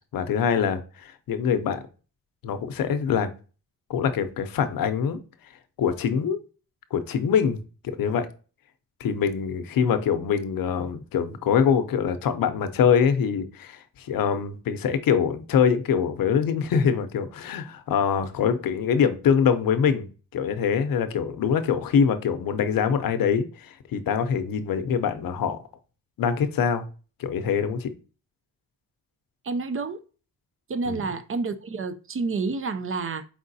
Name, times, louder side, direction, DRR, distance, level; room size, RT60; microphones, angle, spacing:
voice 1, 0.1-1.8 2.4-3.3 3.9-5.2 5.8-6.4 6.9-7.6 7.8-8.3 9.0-25.6 26.2-26.9 27.2-27.9 30.9-31.0, left 7 dB, 75° left, 0.7 m, -24 dB
voice 2, 29.4-30.0 30.7-33.2, right 4 dB, 40° right, 0.5 m, -29 dB
4.7 x 3.7 x 2.6 m
cardioid pair, 80°, 34 cm